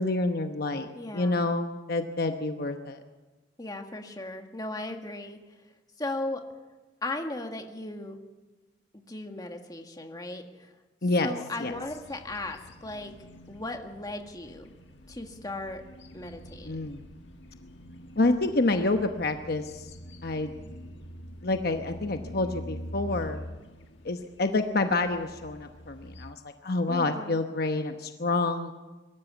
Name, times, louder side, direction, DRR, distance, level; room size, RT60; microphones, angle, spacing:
voice 1, 0.0-3.0 11.0-11.3 11.6-11.7 16.6-17.0 18.2-19.9 20.2-20.5 21.4-23.4 24.0-28.7, left 2 dB, 55° left, 6 dB, 1.0 m, -28 dB
voice 2, 1.0-1.5 3.6-5.4 6.0-6.4 7.0-8.2 8.9-10.7 11.2-13.1 13.5-14.7 15.1-15.8 16.1-16.9 26.9-27.4, left 2 dB, 20° left, 4 dB, 1.8 m, -37 dB
sound 1, 11.7-26.3, equal, 75° left, 1.6 m, -45 dB
23.5 x 13.5 x 8.3 m, 1.2 s
head